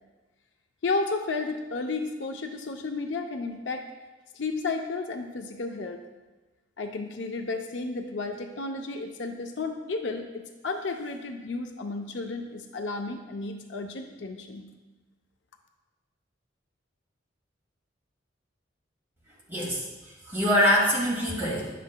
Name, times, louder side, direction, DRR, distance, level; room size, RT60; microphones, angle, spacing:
voice 1, 0.8-3.8 4.4-6.0 6.8-14.6, left 3 dB, 65° left, 5 dB, 0.6 m, -32 dB
voice 2, 19.5-21.7, equal, 10° right, -6 dB, 2.1 m, -25 dB
10.5 x 7.4 x 2.2 m, 1.2 s
head